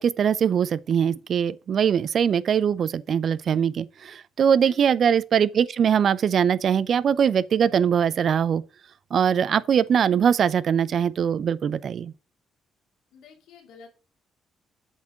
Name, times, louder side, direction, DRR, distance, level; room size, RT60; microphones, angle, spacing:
voice 1, 0.0-8.6 9.1-12.1, right 8 dB, 55° right, 0.5 m, -22 dB
voice 2, 4.6-5.0 13.1-13.9, left 6 dB, 85° left, 2.4 m, -48 dB
8.1 x 3.7 x 6.4 m
cardioid pair, 90°, 0 cm